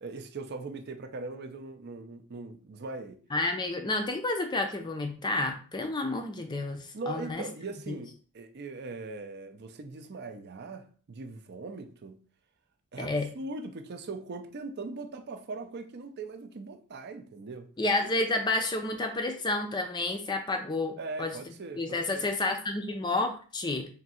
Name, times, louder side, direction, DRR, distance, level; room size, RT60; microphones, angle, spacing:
voice 1, 0.0-3.2 6.9-12.2 12.9-17.7 21.0-22.2, right 3 dB, 50° right, 0.5 m, -40 dB
voice 2, 3.3-7.5 7.9-8.0 13.0-13.3 17.8-21.3 21.8-23.9, left 2 dB, 20° left, 0.4 m, -30 dB
3.6 x 2.6 x 4.1 m
head